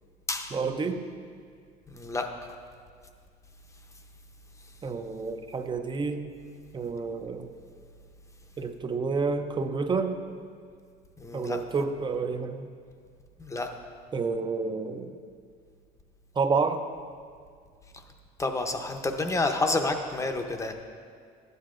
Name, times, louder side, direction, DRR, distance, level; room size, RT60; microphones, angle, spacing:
voice 1, 0.5-1.0 4.8-6.3 6.7-7.5 8.6-10.2 11.3-12.7 14.1-15.1 16.4-16.8, right 4 dB, 25° right, 8 dB, 0.5 m, -29 dB
voice 2, 1.9-2.3 11.2-11.6 13.4-13.7 18.4-20.7, left 2 dB, 20° left, 5 dB, 0.7 m, -29 dB
12.0 x 9.3 x 2.5 m, 2.1 s
cardioid pair, 110°, 17 cm